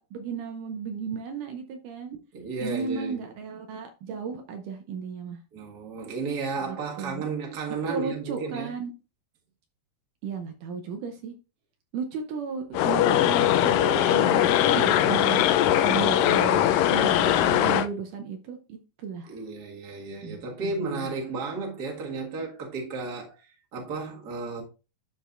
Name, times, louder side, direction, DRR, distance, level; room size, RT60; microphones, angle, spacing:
voice 1, 0.0-2.2 2.6-5.4 6.7-7.3 7.9-8.9 10.2-11.3 11.9-19.4 20.2-21.1, right 6 dB, 75° right, 2.2 m, -34 dB
voice 2, 2.3-3.1 5.5-8.7 14.6-15.7 19.3-23.4 23.7-24.6, right 3 dB, 35° right, 1.8 m, -34 dB
sound 1, 12.7-17.9, left 11 dB, 80° left, 2.2 m, -21 dB
12.0 x 4.6 x 2.5 m
omnidirectional pair, 4.0 m